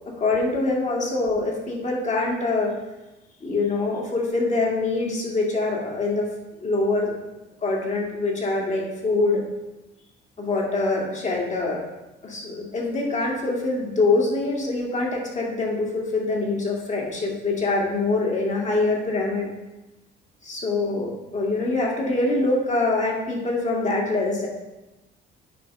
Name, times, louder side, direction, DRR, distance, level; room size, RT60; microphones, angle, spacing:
voice 1, 0.2-2.7 3.4-6.3 6.6-7.2 7.6-9.4 10.4-11.8 12.2-19.5 20.4-24.5, left 3 dB, 35° left, -2 dB, 2.3 m, -24 dB
9.9 x 3.6 x 5.4 m, 1.0 s
cardioid pair, 90°, 20 cm